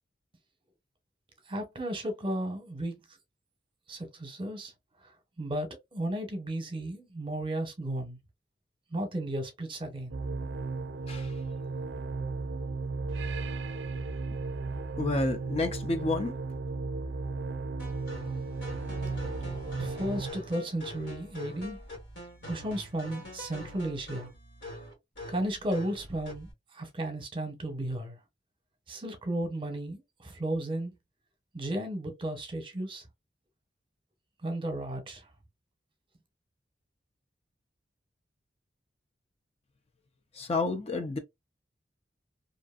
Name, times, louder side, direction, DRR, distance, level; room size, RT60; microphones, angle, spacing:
voice 1, 1.5-3.0 3.9-4.7 5.0-5.1 5.4-8.2 8.9-10.2 19.7-21.8 22.4-24.3 25.3-28.2 28.9-30.9 31.5-33.0 34.4-35.3, right 1 dB, 30° right, 0.8 m, -34 dB
sound 1, 10.1-20.3, right 3 dB, 75° right, 0.4 m, -35 dB
voice 2, 15.0-16.3 40.3-41.2, left 3 dB, 35° left, 0.4 m, -30 dB
sound 2, 17.8-26.5, left 1 dB, 70° left, 1.6 m, -44 dB
2.6 x 2.5 x 2.3 m
head